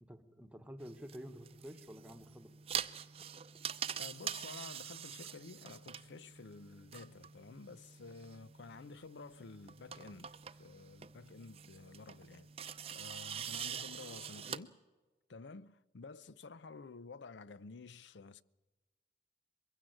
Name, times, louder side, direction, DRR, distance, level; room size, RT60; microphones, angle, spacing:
voice 1, 0.1-2.5, equal, 5° right, 1.2 m, -50 dB
sound 1, 0.8-14.6, right 8 dB, 35° right, 0.6 m, -45 dB
voice 2, 4.0-12.5 12.9-14.8 15.3-18.4, left 4 dB, 80° left, 0.6 m, -51 dB
22.5 x 16.0 x 9.0 m
head